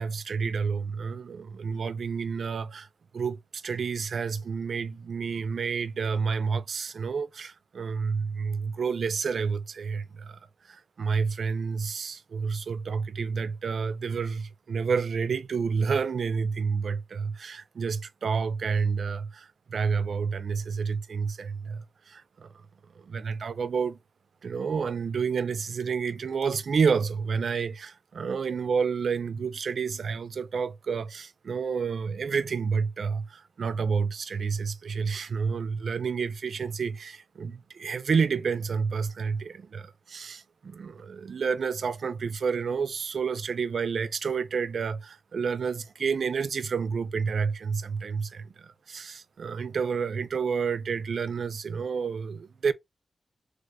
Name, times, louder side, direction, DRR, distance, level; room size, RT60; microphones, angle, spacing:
voice 1, 0.0-2.9 3.1-10.4 10.7-22.5 23.0-24.0 24.4-52.7, right 5 dB, 80° right, 0.3 m, -29 dB
3.2 x 2.1 x 3.6 m
cardioid pair, 55°, 0 cm